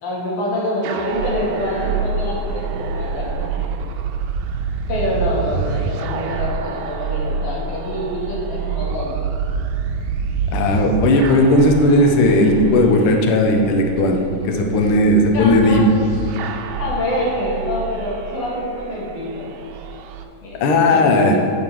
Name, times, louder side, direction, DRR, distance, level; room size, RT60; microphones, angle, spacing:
voice 1, 0.0-3.7 4.9-9.1 9.4-9.5 15.3-15.8 16.8-19.5 20.4-21.4, equal, 90° left, -6 dB, 3.7 m, -26 dB
sound 1, 0.8-20.2, right 5 dB, 80° right, 1.8 m, -27 dB
voice 2, 10.5-14.2 14.4-15.8 20.6-21.4, left 1 dB, 65° left, 3 dB, 1.4 m, -15 dB
9.2 x 5.2 x 6.1 m, 2.8 s
omnidirectional pair, 3.4 m